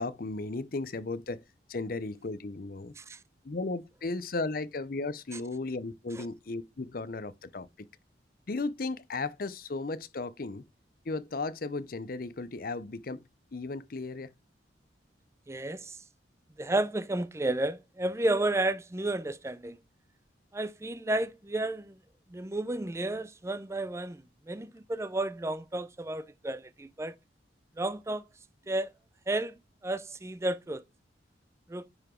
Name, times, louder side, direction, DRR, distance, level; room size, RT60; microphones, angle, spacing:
voice 1, 0.0-1.4 1.7-2.9 3.4-7.9 8.5-10.6 11.1-13.2 13.5-14.3, left 3 dB, 50° left, 0.6 m, -35 dB
voice 2, 15.5-16.0 16.6-19.8 20.5-22.0 22.3-27.1 27.8-28.2 28.7-28.9 29.3-29.5 29.8-30.8 31.7-31.9, right 2 dB, 15° right, 0.4 m, -32 dB
9.7 x 4.8 x 3.7 m
head